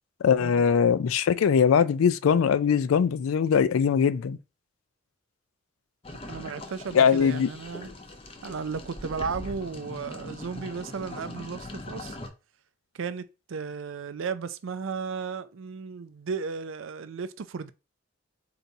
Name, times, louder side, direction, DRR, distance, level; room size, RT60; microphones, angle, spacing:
voice 1, 0.2-4.4 6.9-7.5, left 7 dB, 80° left, 0.3 m, -21 dB
sound 1, 6.0-12.3, left 1 dB, 25° left, 0.6 m, -41 dB
voice 2, 6.3-7.9 8.4-12.2 12.9-17.7, right 5 dB, 70° right, 0.4 m, -35 dB
3.9 x 2.7 x 4.6 m
head